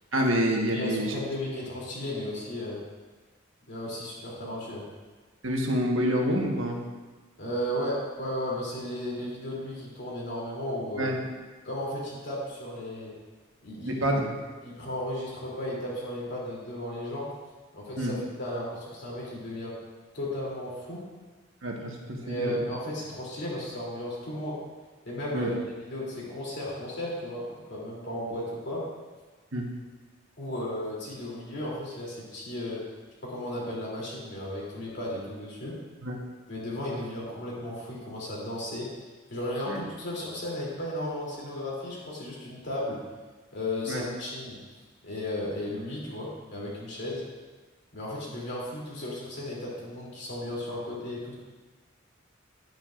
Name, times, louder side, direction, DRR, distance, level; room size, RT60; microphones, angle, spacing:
voice 1, 0.1-1.1 5.4-6.8 11.0-11.2 13.9-14.3 18.0-18.1 21.6-22.6 25.3-25.5 29.5-29.7 36.0-36.2 39.7-39.8 43.9-44.1, equal, 85° right, 0 dB, 1.4 m, -27 dB
voice 2, 0.7-2.8 3.7-4.8 7.4-11.1 11.6-13.1 13.6-14.1 14.6-17.3 17.7-19.7 20.1-21.0 22.2-24.6 25.0-28.8 30.4-32.8 33.2-35.8 36.5-38.9 39.3-43.0 43.5-44.6 45.0-47.2 47.9-51.3, left 1 dB, 60° left, -5 dB, 3.1 m, -34 dB
11.0 x 9.2 x 2.5 m, 1.3 s
head